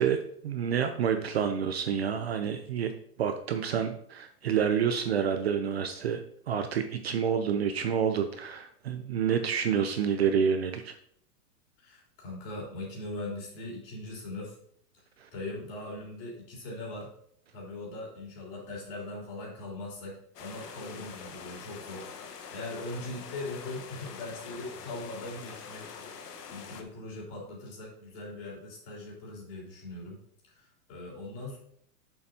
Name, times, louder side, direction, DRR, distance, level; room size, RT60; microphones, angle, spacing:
voice 1, 0.0-2.9 3.2-10.9 15.2-15.3, right 7 dB, 45° right, 7 dB, 0.5 m, -28 dB
voice 2, 11.8-14.6 15.3-17.1 17.5-22.1 22.5-26.1 26.5-30.2 30.5-31.6, left 2 dB, 35° left, -3 dB, 3.2 m, -40 dB
sound 1, 20.3-26.8, left 6 dB, 80° left, 1.3 m, -44 dB
8.5 x 7.0 x 2.8 m, 0.66 s
hypercardioid pair, 165°, 47 cm